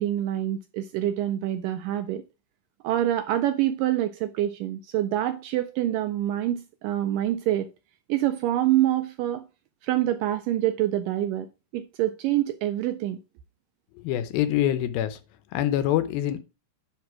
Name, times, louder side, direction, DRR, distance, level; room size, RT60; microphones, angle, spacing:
voice 1, 0.0-2.2 2.8-7.7 8.1-9.4 9.8-11.5 11.7-13.2, right 13 dB, 85° right, 2.0 m, -26 dB
voice 2, 14.0-15.2 15.5-16.4, left 12 dB, 80° left, 2.5 m, -25 dB
9.6 x 4.2 x 4.7 m
omnidirectional pair, 4.3 m